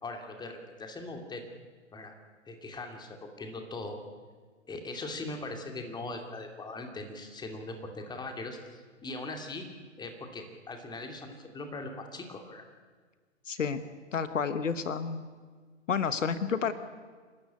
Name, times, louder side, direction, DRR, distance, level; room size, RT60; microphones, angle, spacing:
voice 1, 0.0-1.4 1.9-2.1 2.5-4.0 4.7-9.7 10.0-12.6, left 2 dB, 10° left, 4 dB, 2.6 m, -40 dB
voice 2, 13.5-13.8 14.1-15.3 15.9-16.7, left 6 dB, 75° left, 12 dB, 1.3 m, -30 dB
28.5 x 12.5 x 9.9 m, 1.5 s
figure-of-eight pair, 115°, 38 cm